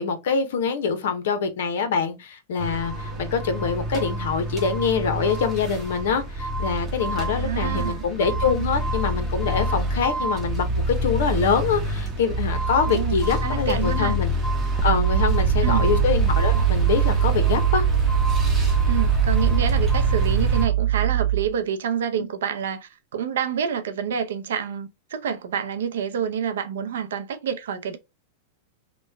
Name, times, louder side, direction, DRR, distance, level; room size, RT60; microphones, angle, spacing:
voice 1, 0.0-14.3 14.8-17.8, left 6 dB, 75° left, 0.7 m, -25 dB
sound 1, 2.6-20.7, right 1 dB, 10° right, 0.8 m, -26 dB
voice 2, 7.3-8.0 12.9-13.2 13.4-14.2 15.6-15.9 18.9-28.0, right 8 dB, 85° right, 0.5 m, -28 dB
sound 2, 14.8-21.6, right 13 dB, 30° right, 0.4 m, -22 dB
3.0 x 2.1 x 3.3 m
supercardioid pair, 155°, 0 cm